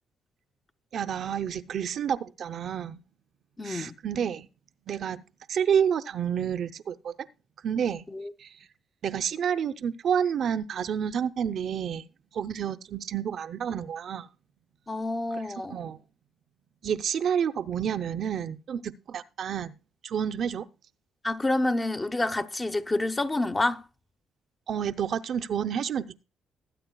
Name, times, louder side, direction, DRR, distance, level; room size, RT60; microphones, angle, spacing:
voice 1, 0.9-3.0 3.6-4.5 4.9-5.2 5.5-7.1 7.6-8.0 8.4-8.5 9.0-12.0 12.3-14.3 15.7-16.0 16.8-19.7 20.0-20.7 24.7-26.2, right 8 dB, 60° right, 0.7 m, -29 dB
voice 2, 3.6-3.9 8.1-8.3 14.9-15.8 21.2-23.8, left 2 dB, 20° left, 0.9 m, -28 dB
20.0 x 8.7 x 2.3 m
cardioid pair, 90°, 0 cm